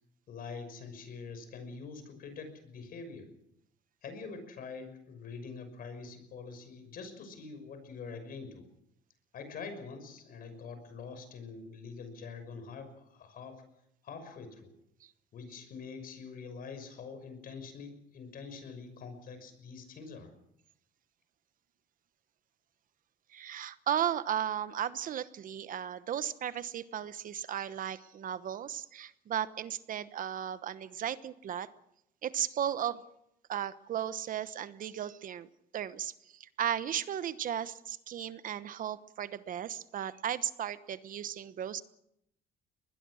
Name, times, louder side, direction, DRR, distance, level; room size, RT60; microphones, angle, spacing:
voice 1, 0.3-3.3 4.0-8.6 9.3-13.6 14.0-14.7 15.3-20.3, left 5 dB, 60° left, 9 dB, 6.0 m, -45 dB
voice 2, 23.3-31.7 32.2-33.0 33.5-35.5 35.7-36.1 36.4-41.8, right 10 dB, 55° right, 14 dB, 1.1 m, -35 dB
22.5 x 20.5 x 6.4 m, 0.78 s
cardioid pair, 110°, 17 cm